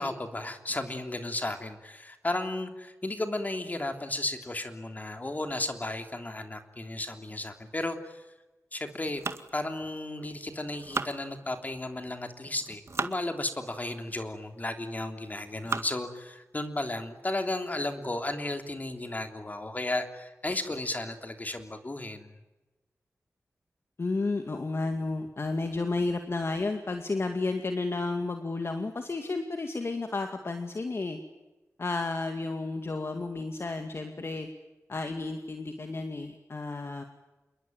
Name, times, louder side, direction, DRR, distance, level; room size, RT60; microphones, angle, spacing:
voice 1, 0.0-8.2 8.7-9.2 9.5-22.3, left 2 dB, 30° left, 6 dB, 3.2 m, -34 dB
sound 1, 9.1-10.3 10.7-11.8 12.5-13.2 13.9-14.0 14.7-15.0 15.5-16.1 16.6-16.7 17.1-17.2 17.6-17.9, right 4 dB, 55° right, 1.9 m, -37 dB
voice 2, 24.0-31.2 31.8-34.5 34.9-37.0, left 3 dB, 50° left, 6 dB, 2.3 m, -32 dB
28.0 x 22.0 x 9.2 m, 1.1 s
wide cardioid pair, 95°, 5 cm